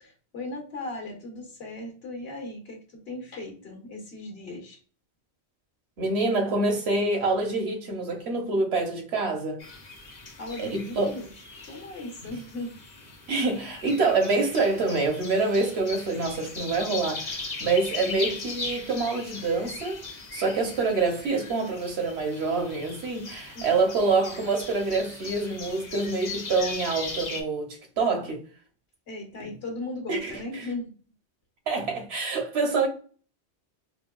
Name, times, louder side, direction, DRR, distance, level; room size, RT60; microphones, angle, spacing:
voice 1, 0.0-4.8 10.4-12.8 23.5-23.8 29.1-30.9, left 2 dB, 65° left, 1.3 m, -37 dB
voice 2, 6.0-9.6 10.6-11.1 13.3-20.0 20.3-28.4 29.4-29.5 30.1-30.7 31.7-32.9, right 3 dB, 75° right, 1.2 m, -26 dB
sound 1, 9.6-27.4, left 3 dB, 45° left, 0.8 m, -39 dB
4.5 x 2.2 x 2.2 m
omnidirectional pair, 1.1 m